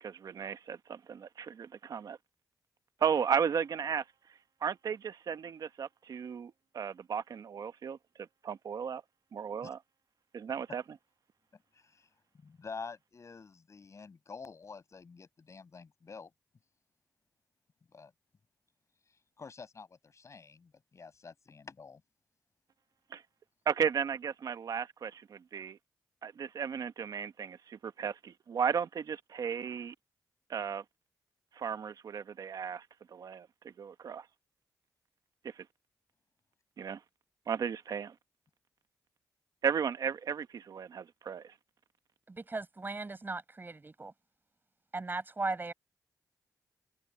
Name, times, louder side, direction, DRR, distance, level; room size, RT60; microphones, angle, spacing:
voice 1, 0.0-2.2 3.0-4.0 4.6-8.0 8.4-9.0 9.3-9.8 10.3-10.8 23.1-23.2 23.7-25.8 26.2-29.9 30.5-30.8 31.6-32.8 33.1-33.5 33.8-34.2 36.8-37.0 37.5-38.1 39.6-41.4, right 7 dB, 65° right, 1.0 m, -34 dB
voice 2, 11.7-12.1 12.4-16.3 17.9-18.1 19.4-22.0, left 5 dB, 45° left, 6.4 m, -48 dB
voice 3, 42.3-44.1 44.9-45.7, right 3 dB, 30° right, 6.9 m, -37 dB
cardioid pair, 75°, 7 cm